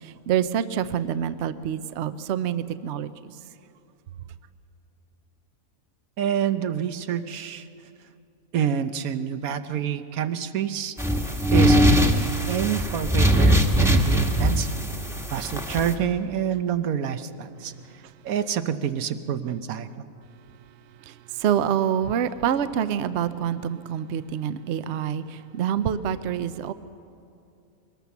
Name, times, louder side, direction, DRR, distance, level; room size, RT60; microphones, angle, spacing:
voice 1, 0.0-3.1 21.1-26.7, right 9 dB, 60° right, 13 dB, 0.9 m, -26 dB
voice 2, 6.2-7.7 8.5-10.9 11.5-14.7 15.3-17.7 18.2-20.1, right 8 dB, 85° right, 11 dB, 1.2 m, -27 dB
sound 1, 11.0-15.9, equal, ahead, 1.0 m, -21 dB
22.0 x 19.0 x 7.1 m, 2.5 s
omnidirectional pair, 1.5 m